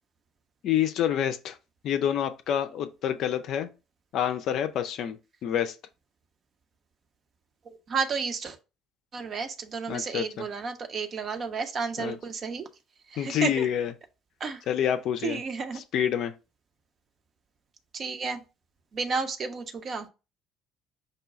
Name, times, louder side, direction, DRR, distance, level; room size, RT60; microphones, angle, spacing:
voice 1, 0.6-1.6 1.8-3.7 4.1-5.7 9.9-10.2 12.0-12.2 13.2-13.9 14.7-15.4 15.9-16.3, left 10 dB, 55° left, 0.4 m, -27 dB
voice 2, 7.9-8.6 9.1-12.7 13.1-13.7 14.4-14.6 15.2-15.8 17.9-18.4 18.9-20.1, right 5 dB, 40° right, 0.7 m, -32 dB
5.4 x 2.2 x 4.0 m
figure-of-eight pair, 55°, 0 cm